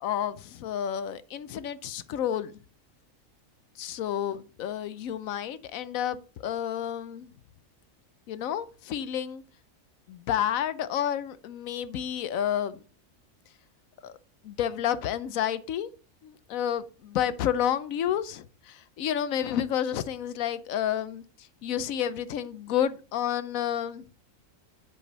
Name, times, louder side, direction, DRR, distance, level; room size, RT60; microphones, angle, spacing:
voice 1, 0.0-2.5 3.8-7.3 8.3-9.4 10.1-12.8 14.0-14.1 14.4-15.9 16.2-21.2 21.6-24.0, left 10 dB, 90° left, 1.1 m, -30 dB
11.0 x 5.0 x 4.0 m
omnidirectional pair, 1.4 m